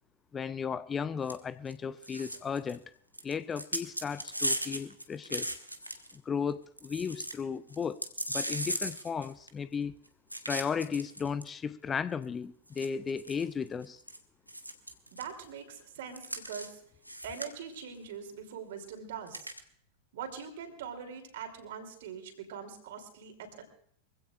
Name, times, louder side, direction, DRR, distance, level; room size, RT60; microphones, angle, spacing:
voice 1, 0.3-2.8 3.2-5.6 6.1-8.0 8.3-10.0 10.5-14.0, left 6 dB, 20° left, 0.5 m, -35 dB
sound 1, 1.3-1.4 1.7-1.8 2.0-2.8 3.1-6.2 6.5-6.6 6.8-7.3 7.7-9.7 10.3-11.5 12.2-12.3 12.8-14.2 14.5-15.3 16.1-16.7 17.0-17.7 19.3-19.6, equal, 90° right, 1.2 m, -37 dB
voice 2, 15.1-16.8 17.2-19.5 20.1-23.6, right 7 dB, 55° right, 3.2 m, -42 dB
24.0 x 16.0 x 2.5 m
figure-of-eight pair, 90°, 0 cm